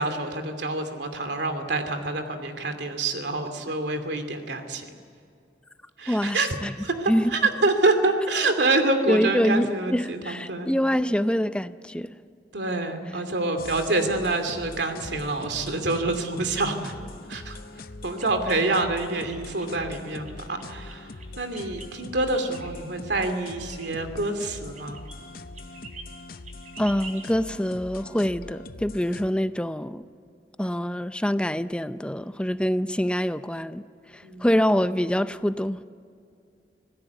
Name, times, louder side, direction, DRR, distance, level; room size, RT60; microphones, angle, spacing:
voice 1, 0.0-4.8 6.0-6.5 6.8-10.7 12.5-16.9 17.3-25.0 34.2-34.5, right 2 dB, 80° right, 2.6 m, -27 dB
voice 2, 6.1-6.4 6.6-6.7 7.1-7.3 9.1-12.2 26.8-30.0 30.6-33.8 34.1-35.8, equal, 5° left, 0.5 m, -25 dB
sound 1, 13.6-29.3, left 3 dB, 55° left, 0.7 m, -42 dB
sound 2, 18.2-20.0 20.3-21.9 22.3-22.7 23.4-24.4 24.7-25.2 25.4-26.1 26.4-27.3, right 4 dB, 45° right, 4.1 m, -45 dB
26.0 x 17.0 x 8.2 m
head